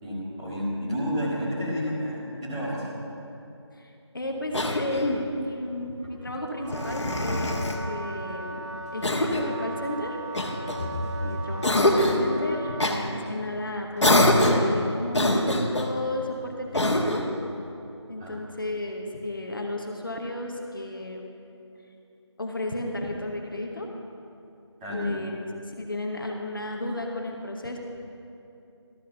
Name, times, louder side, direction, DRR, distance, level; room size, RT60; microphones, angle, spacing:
voice 1, 0.0-2.9 13.1-13.2 18.2-18.4 24.8-25.1, equal, 10° right, -9 dB, 1.5 m, -30 dB
voice 2, 3.7-8.6 8.9-10.4 11.2-17.3 18.1-21.2 22.4-23.9 24.9-27.8, left 1 dB, 45° left, 2 dB, 1.0 m, -33 dB
Cough, 4.5-5.3 6.6-7.8 9.0-9.5 10.3-11.2 11.6-12.3 12.8-13.0 14.0-14.7 15.1-15.9 16.7-17.3, left 1 dB, 70° left, 1.3 m, -24 dB
Wind instrument woodwind instrument, 6.5-13.0, right 1 dB, 80° right, 2.1 m, -37 dB
12.5 x 6.5 x 6.7 m, 2.8 s
figure-of-eight pair, 165°, 15 cm